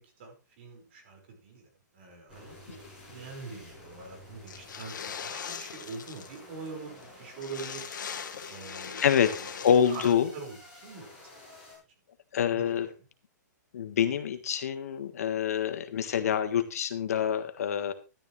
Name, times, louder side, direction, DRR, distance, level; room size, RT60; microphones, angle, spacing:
voice 1, 0.0-2.8 3.1-7.9 8.5-9.5 9.9-11.8 12.5-12.9, right 4 dB, 35° right, 3 dB, 5.3 m, -44 dB
sound 1, 2.3-11.8, left 1 dB, 5° right, 6.5 m, -51 dB
sound 2, 4.5-6.4 6.7-6.8 7.0-7.1 7.4-10.1, left 7 dB, 90° left, 1.8 m, -40 dB
voice 2, 9.0-9.3 9.6-10.3 12.3-12.9 13.7-17.9, left 8 dB, 55° left, 8 dB, 1.6 m, -26 dB
13.0 x 12.0 x 3.3 m, 0.30 s
hypercardioid pair, 175°, 10 cm